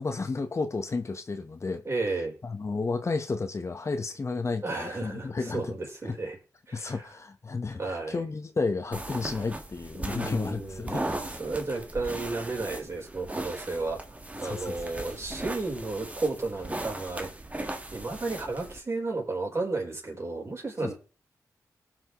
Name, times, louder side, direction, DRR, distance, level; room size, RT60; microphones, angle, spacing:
voice 1, 0.0-1.8 2.4-5.7 6.0-6.1 6.7-11.0 14.4-14.8 20.8-20.9, left 4 dB, 45° left, 1.2 m, -32 dB
voice 2, 1.8-2.3 4.6-6.4 6.7-7.1 7.8-8.2 10.0-14.0 14.4-17.3 17.9-20.9, right 3 dB, 40° right, 4.2 m, -33 dB
sound 1, 8.9-18.8, right 1 dB, 20° right, 1.6 m, -38 dB
18.0 x 6.1 x 3.1 m
cardioid pair, 55°, 7 cm